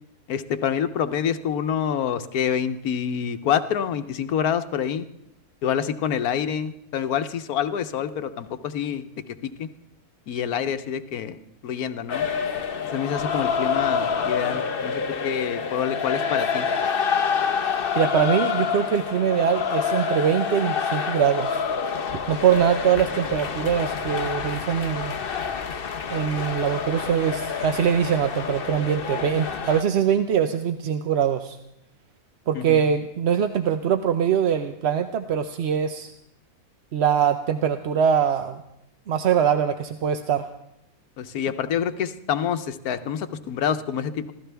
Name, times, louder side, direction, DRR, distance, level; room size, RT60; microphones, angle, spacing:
voice 1, 0.3-5.1 5.6-9.0 9.4-9.7 10.3-12.2 12.9-16.7 32.5-32.8 41.2-44.3, left 8 dB, 85° left, 10 dB, 1.3 m, -27 dB
sound 1, 12.1-29.8, left 6 dB, 45° left, 0.9 m, -27 dB
voice 2, 17.9-21.6 22.3-25.2 26.1-31.6 32.5-36.1 36.9-38.6 39.1-40.5, right 8 dB, 55° right, 8 dB, 0.8 m, -23 dB
25.5 x 16.0 x 3.4 m, 0.81 s
omnidirectional pair, 1.5 m